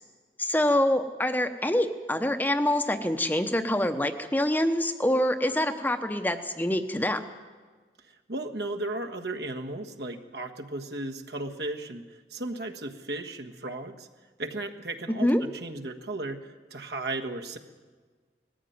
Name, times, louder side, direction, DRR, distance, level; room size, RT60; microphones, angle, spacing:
voice 1, 0.4-7.2 15.2-15.4, left 1 dB, 10° left, 8 dB, 0.8 m, -25 dB
voice 2, 8.1-14.1 14.4-16.4 16.7-17.6, right 2 dB, 70° right, 4 dB, 1.5 m, -35 dB
19.5 x 14.5 x 9.5 m, 1.5 s
head